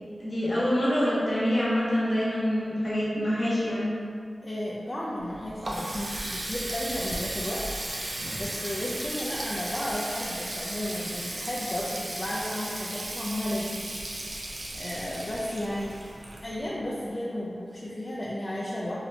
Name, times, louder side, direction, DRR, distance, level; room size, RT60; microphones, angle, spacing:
voice 1, 0.2-3.9 8.8-8.9, equal, 55° left, -9 dB, 0.9 m, -26 dB
voice 2, 4.4-7.8 8.4-13.9 14.4-14.5 14.7-16.0 16.4-19.0, left 1 dB, 40° left, -7 dB, 0.4 m, -33 dB
Water tap faucet, 5.2-16.9, right 1 dB, 55° right, 0.3 m, -35 dB
2.7 x 2.0 x 2.7 m, 2.2 s
wide cardioid pair, 55°, 0 cm